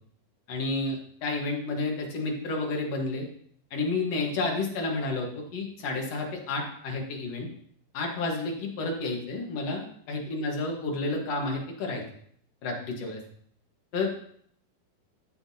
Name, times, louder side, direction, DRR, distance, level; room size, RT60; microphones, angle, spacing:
voice 1, 0.5-3.3 3.7-7.5 7.9-12.0 12.6-13.2 13.9-14.1, left 3 dB, 55° left, 1 dB, 2.0 m, -30 dB
14.5 x 6.9 x 2.8 m, 0.64 s
omnidirectional pair, 4.5 m